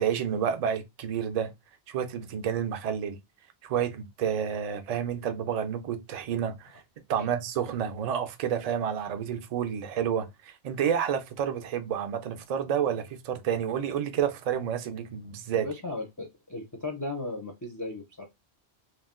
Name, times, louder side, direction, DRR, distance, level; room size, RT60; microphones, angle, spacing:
voice 1, 0.0-1.5 1.9-3.2 3.6-6.8 7.1-15.7, right 8 dB, 55° right, 0.4 m, -30 dB
voice 2, 15.5-18.2, left 2 dB, 30° left, 0.3 m, -36 dB
2.5 x 2.1 x 3.5 m
omnidirectional pair, 1.1 m